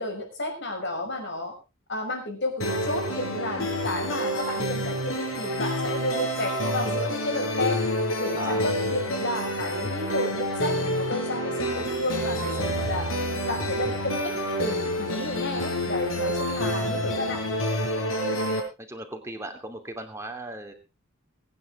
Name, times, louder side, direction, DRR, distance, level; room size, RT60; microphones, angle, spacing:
voice 1, 0.0-1.5 1.9-7.8 8.2-13.1 13.5-14.3 14.6-17.4, left 1 dB, 60° left, 3 dB, 6.0 m, -32 dB
sound 1, 2.6-18.6, equal, 75° left, 6.2 m, -28 dB
voice 2, 8.4-8.7 18.8-20.7, right 2 dB, 15° right, 4 dB, 2.8 m, -38 dB
23.0 x 9.8 x 3.8 m, 0.30 s
head